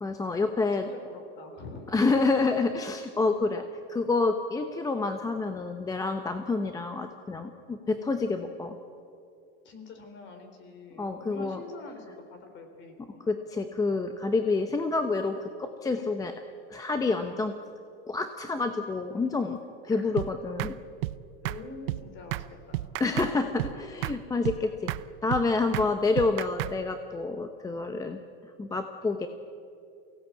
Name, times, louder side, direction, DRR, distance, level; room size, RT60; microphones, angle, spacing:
voice 1, 0.0-0.9 1.9-3.6 3.9-8.8 11.0-11.6 13.3-16.3 16.7-17.6 18.1-19.6 19.8-20.8 23.0-24.9 25.2-28.2 28.6-29.3, left 3 dB, 10° left, 7 dB, 0.8 m, -28 dB
voice 2, 0.7-2.0 7.9-8.1 9.6-13.2 19.9-20.1 21.4-22.9 23.1-24.0 24.5-24.6, left 3 dB, 35° left, 6 dB, 3.9 m, -46 dB
sound 1, 20.2-20.3 20.6-20.7 21.0-21.2 21.4-21.6 21.9-22.0 22.3-22.5 22.7-23.3 23.6-23.7 24.0-24.2 24.4-24.6 24.9-25.0 25.3-25.4 25.7-25.9 26.2-26.7, right 18 dB, 70° right, 0.7 m, -31 dB
23.5 x 17.0 x 8.5 m, 2.4 s
supercardioid pair, 145°, 31 cm